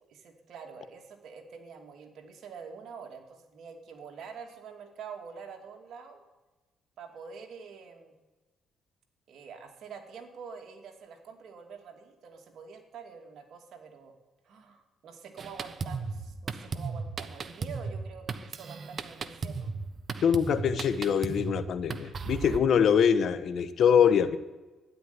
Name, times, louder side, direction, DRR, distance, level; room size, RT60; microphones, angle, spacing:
voice 1, 0.0-6.2 7.0-8.1 9.3-14.1 14.4-19.8, right 6 dB, 65° right, 3 dB, 2.6 m, -46 dB
Drum kit, 15.4-22.6, right 4 dB, 45° right, 1.1 m, -36 dB
voice 2, 20.2-24.4, left 7 dB, 65° left, 12 dB, 1.1 m, -24 dB
12.5 x 10.5 x 9.7 m, 1.2 s
cardioid pair, 90°, 0 cm